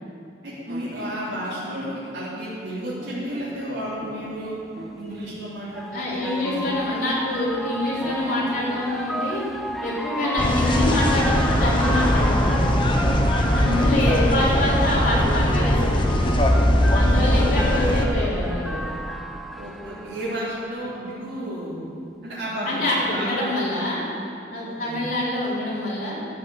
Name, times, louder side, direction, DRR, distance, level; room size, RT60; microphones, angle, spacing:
voice 1, 0.4-4.6 4.9-6.7 13.7-14.1 17.0-17.5 19.5-21.8 22.2-23.3 24.6-25.0, equal, 75° right, -11 dB, 3.2 m, -32 dB
sound 1, 0.7-2.4 3.0-3.6 4.0-5.3 6.5-7.7 8.0-12.6 13.2-15.3, equal, 50° right, 2.0 m, -42 dB
sound 2, 3.6-3.7 5.1-20.7, equal, ahead, 0.3 m, -33 dB
voice 2, 5.9-9.4 9.8-13.1 13.5-16.2 16.9-18.8 22.6-24.0 24.5-26.2, left 1 dB, 50° left, -7 dB, 3.9 m, -25 dB
sound 3, 10.4-18.1, equal, 25° left, 1.0 m, -20 dB
12.5 x 8.5 x 7.0 m, 2.5 s
head